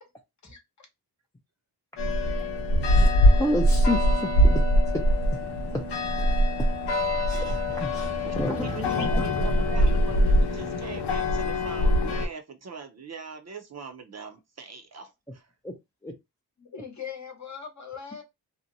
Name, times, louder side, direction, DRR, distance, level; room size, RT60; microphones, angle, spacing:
sound 1, 2.0-12.3, equal, 80° left, 0.8 m, -23 dB
voice 1, 2.8-4.6 4.9-5.0 5.7-5.8 6.2-6.3 6.6-6.7 7.3-9.3 15.6-15.7 16.0-16.1, left 1 dB, 10° left, 0.4 m, -31 dB
voice 2, 8.2-15.5, right 5 dB, 40° right, 0.5 m, -41 dB
voice 3, 16.6-18.2, left 7 dB, 45° left, 0.8 m, -40 dB
2.7 x 2.1 x 2.6 m
wide cardioid pair, 90°, 40 cm